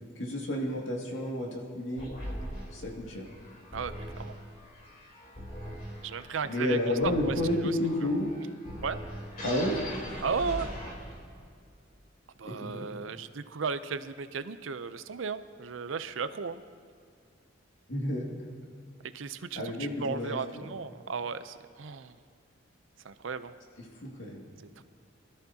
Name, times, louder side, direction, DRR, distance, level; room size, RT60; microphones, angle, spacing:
voice 1, 0.2-2.1 2.7-3.3 6.4-8.3 9.4-9.8 12.4-12.9 17.9-18.3 19.6-20.7 24.0-24.5, left 1 dB, 75° left, -1 dB, 2.3 m, -31 dB
sound 1, 2.0-11.4, equal, 45° left, 3.5 m, -41 dB
voice 2, 3.7-4.3 6.0-6.8 7.3-7.4 7.6-7.8 8.8-9.0 10.2-10.7 12.4-16.6 19.1-19.6 20.0-22.1 23.0-23.5 24.8-24.9, right 5 dB, 80° right, 12 dB, 0.6 m, -35 dB
23.0 x 13.0 x 2.8 m, 2.2 s
head